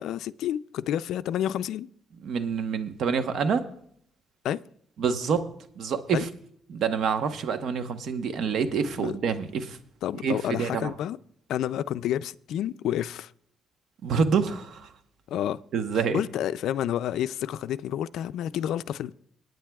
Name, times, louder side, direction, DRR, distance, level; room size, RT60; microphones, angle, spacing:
voice 1, 0.0-1.9 4.4-4.6 6.1-6.2 9.0-9.1 10.0-11.2 11.5-13.3 15.3-15.6 16.1-19.1, left 11 dB, 80° left, 0.3 m, -29 dB
voice 2, 2.2-3.6 5.0-5.4 5.8-6.3 6.7-9.8 10.2-10.9 14.0-14.9 15.7-16.2, right 6 dB, 70° right, 1.0 m, -27 dB
22.5 x 9.4 x 2.3 m
cardioid pair, 90°, 0 cm